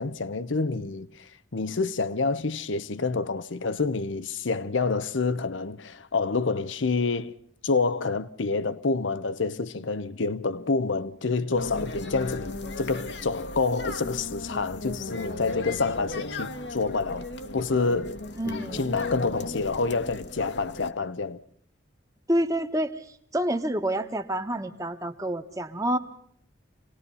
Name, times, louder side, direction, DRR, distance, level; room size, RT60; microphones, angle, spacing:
voice 1, 0.0-7.3 7.6-17.3 17.5-21.4, left 4 dB, 80° left, 0.8 m, -28 dB
sound 1, 11.5-20.9, left 2 dB, 65° left, 1.4 m, -36 dB
voice 2, 18.4-19.0 22.3-26.0, right 1 dB, 15° right, 1.3 m, -28 dB
27.0 x 19.5 x 5.5 m
head